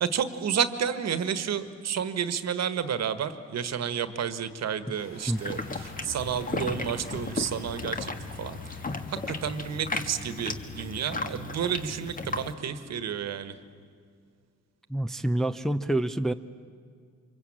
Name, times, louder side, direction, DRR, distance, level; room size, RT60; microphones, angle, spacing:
voice 1, 0.0-8.1 8.4-8.8 9.1-13.5, right 8 dB, 60° right, 11 dB, 1.5 m, -31 dB
sound 1, 4.9-10.3, left 3 dB, 60° left, 4.2 m, -50 dB
sound 2, 5.4-12.5, left 3 dB, 30° left, 1.7 m, -35 dB
voice 2, 14.9-16.3, right 1 dB, ahead, 8 dB, 0.6 m, -27 dB
25.0 x 23.5 x 8.8 m, 2.2 s
cardioid pair, 90°, 30 cm